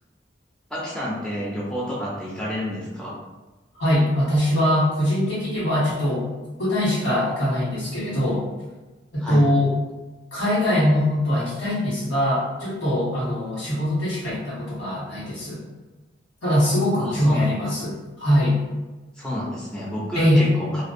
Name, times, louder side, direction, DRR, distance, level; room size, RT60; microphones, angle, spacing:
voice 1, 0.7-3.1 9.2-9.4 17.0-17.5 19.2-20.8, left 1 dB, 5° left, -6 dB, 0.4 m, -30 dB
voice 2, 3.8-6.2 6.6-8.4 9.1-9.7 10.3-15.6 16.4-18.6 20.1-20.5, left 1 dB, 85° left, -8 dB, 1.3 m, -22 dB
2.5 x 2.1 x 2.5 m, 1.2 s
head